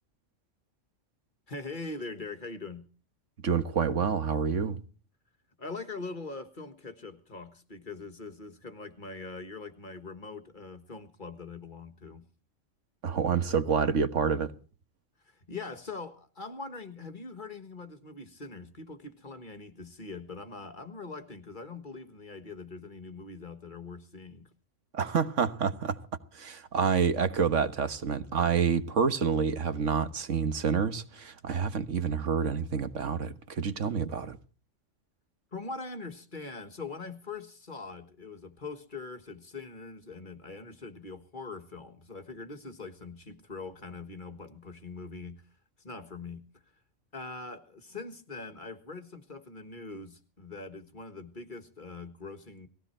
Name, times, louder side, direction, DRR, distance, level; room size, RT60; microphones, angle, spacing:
voice 1, 1.5-2.8 5.6-12.2 15.2-24.5 35.5-45.4 45.8-46.6 47.1-52.7, left 3 dB, 40° left, 1.7 m, -42 dB
voice 2, 3.4-4.8 13.0-14.5 24.9-26.0 26.3-34.4, right 6 dB, 75° right, 1.6 m, -28 dB
20.0 x 16.0 x 4.4 m
omnidirectional pair, 1.3 m